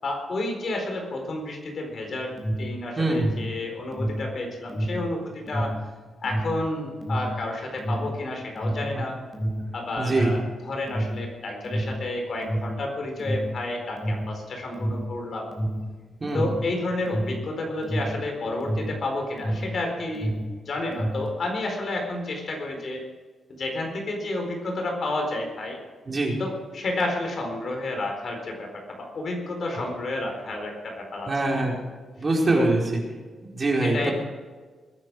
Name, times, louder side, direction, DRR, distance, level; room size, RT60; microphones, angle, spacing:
voice 1, 0.0-5.7 6.2-9.2 9.7-15.5 16.3-20.3 20.7-23.1 23.6-25.8 26.4-31.3 31.6-31.7 32.5-32.7 33.8-34.1, left 2 dB, 55° left, 2 dB, 4.4 m, -31 dB
Alarm, 2.2-19.8 20.1-21.4, equal, 20° left, 4.1 m, -29 dB
voice 2, 10.0-10.3 16.2-16.4 26.1-26.3 31.3-31.7 32.2-32.8 33.5-34.1, right 2 dB, 35° right, -1 dB, 4.3 m, -23 dB
21.5 x 9.8 x 4.9 m, 1.4 s
cardioid pair, 85°, 0 cm